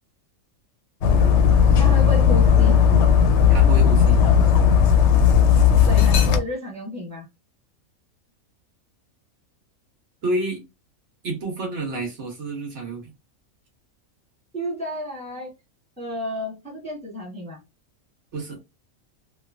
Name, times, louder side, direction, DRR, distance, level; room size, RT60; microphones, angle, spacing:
Dog, 1.0-6.4, left 7 dB, 65° left, 0.7 m, -16 dB
voice 1, 1.8-2.8 5.9-7.3 14.5-15.5 16.0-17.6, left 1 dB, 5° left, 0.9 m, -31 dB
voice 2, 3.5-4.2 10.2-10.6 11.2-13.1 18.3-18.6, right 2 dB, 60° right, 1.2 m, -29 dB
3.1 x 2.2 x 2.4 m
omnidirectional pair, 1.4 m